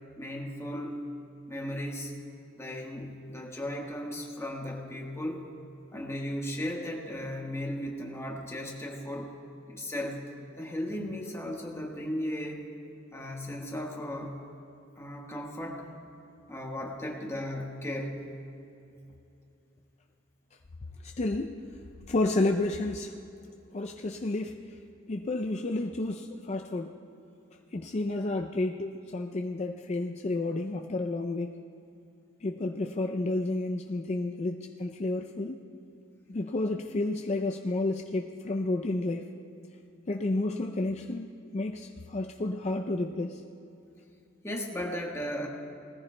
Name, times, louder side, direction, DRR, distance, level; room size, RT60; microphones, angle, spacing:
voice 1, 0.2-1.1 1.5-2.2 2.6-5.4 5.9-9.3 9.7-10.3 10.6-12.7 13.1-14.4 15.0-15.9 16.5-18.3 44.4-45.5, left 1 dB, 15° left, -1 dB, 1.3 m, -36 dB
voice 2, 21.0-21.6 22.1-23.1 23.7-24.8 25.1-27.0 27.7-31.5 32.4-35.6 36.3-39.3 40.1-43.4, left 2 dB, 35° left, 3 dB, 0.4 m, -31 dB
20.0 x 14.5 x 2.2 m, 2.8 s
head